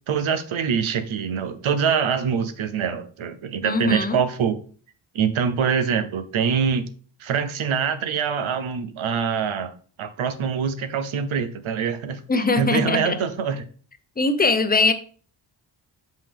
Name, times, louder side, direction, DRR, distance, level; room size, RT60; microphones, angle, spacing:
voice 1, 0.1-4.6 5.1-6.9 7.2-9.7 10.0-12.2 12.6-13.6, right 7 dB, 85° right, 11 dB, 0.8 m, -24 dB
voice 2, 3.6-4.2 12.3-13.2 14.2-14.9, left 3 dB, 20° left, 9 dB, 0.7 m, -21 dB
5.7 x 5.2 x 3.5 m, 0.41 s
cardioid pair, 85°, 47 cm